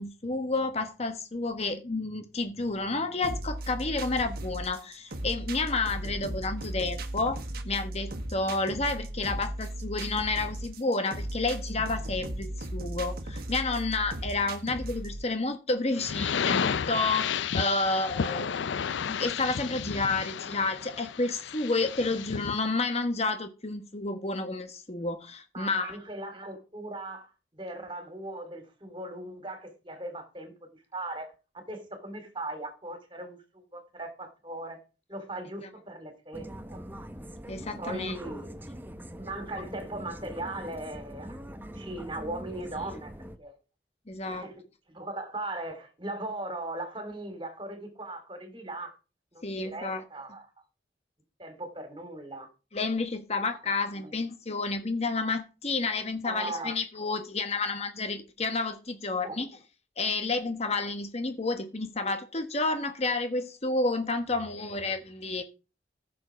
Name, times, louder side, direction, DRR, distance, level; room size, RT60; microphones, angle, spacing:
voice 1, 0.0-18.4 19.1-26.0 35.6-35.7 37.5-38.2 44.1-44.5 49.4-50.0 52.7-59.5 60.0-65.4, left 3 dB, 35° left, 1.1 m, -30 dB
sound 1, 3.2-15.2, right 1 dB, 55° right, 1.5 m, -36 dB
sound 2, 16.0-22.6, left 7 dB, 85° left, 0.5 m, -32 dB
voice 2, 18.1-18.6 25.5-30.5 30.9-34.8 35.1-36.8 37.8-38.6 39.2-41.4 41.7-43.1 43.4-43.5 44.2-44.5 44.9-48.9 49.3-50.5 51.4-52.5 53.4-53.6 53.9-54.3 56.2-56.8 59.2-59.5, right 2 dB, 25° right, 3.1 m, -39 dB
sound 3, 36.3-43.4, equal, 10° right, 0.9 m, -43 dB
14.5 x 7.0 x 5.1 m
head